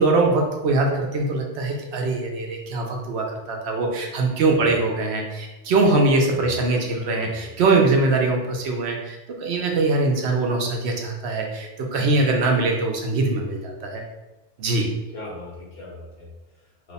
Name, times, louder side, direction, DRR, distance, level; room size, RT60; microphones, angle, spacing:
voice 1, 0.0-14.0 14.6-14.9, right 3 dB, 85° right, 1 dB, 0.9 m, -22 dB
voice 2, 7.1-7.5 15.1-16.9, left 2 dB, 65° left, -4 dB, 1.3 m, -39 dB
3.0 x 2.1 x 4.0 m, 1.0 s
omnidirectional pair, 1.1 m